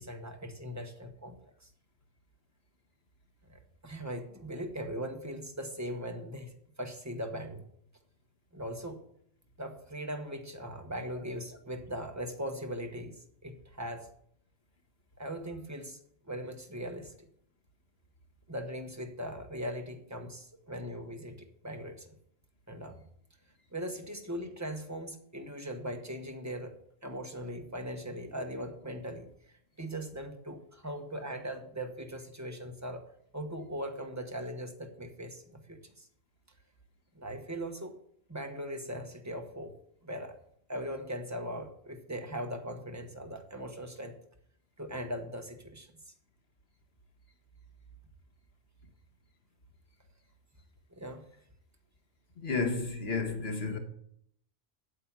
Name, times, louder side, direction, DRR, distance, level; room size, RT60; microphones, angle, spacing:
voice 1, 0.0-1.3 1.6-1.7 3.5-7.6 8.5-9.0 9.6-14.1 15.2-16.0 16.2-17.3 18.5-22.1 22.7-23.1 23.7-26.7 27.0-29.3 29.8-33.0 33.3-36.1 37.1-37.9 38.3-39.7 40.0-40.3 40.7-44.2 44.8-45.9 50.9-51.2, equal, 15° right, 1.2 m, -39 dB
voice 2, 52.4-53.8, left 4 dB, 70° left, 1.7 m, -32 dB
8.5 x 7.6 x 7.4 m
omnidirectional pair, 1.1 m